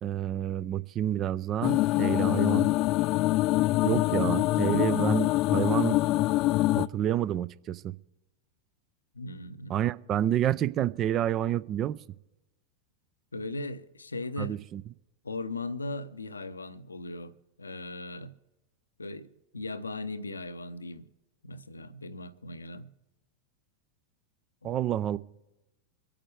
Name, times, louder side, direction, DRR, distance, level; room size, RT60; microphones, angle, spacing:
voice 1, 0.0-2.7 3.8-6.0 6.8-7.9 9.7-12.0 14.4-14.8 24.6-25.2, right 11 dB, 30° right, 0.4 m, -29 dB
sound 1, 1.6-6.9, left 18 dB, 40° left, 0.4 m, -25 dB
voice 2, 9.1-9.8 13.3-14.6 15.2-17.3 17.6-18.3 19.0-21.1 21.4-22.9 24.6-24.7, left 2 dB, 75° left, 0.6 m, -38 dB
25.5 x 8.7 x 3.3 m
figure-of-eight pair, 90°, 0 cm